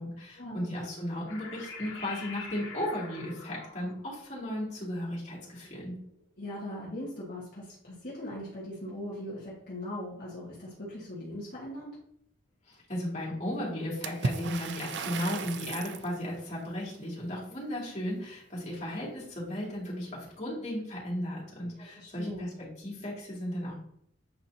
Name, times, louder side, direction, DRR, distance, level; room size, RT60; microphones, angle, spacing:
voice 1, 0.0-5.9 12.7-23.7, left 1 dB, 40° left, -6 dB, 2.7 m, -35 dB
sound 1, 1.3-6.1, left 4 dB, 85° left, 1.6 m, -46 dB
voice 2, 6.4-12.0 21.8-22.5, left 1 dB, 55° left, -7 dB, 1.7 m, -40 dB
Water / Splash splatter, 14.0-16.1, right 4 dB, 60° right, 0.4 m, -35 dB
8.6 x 4.2 x 2.9 m, 0.69 s
head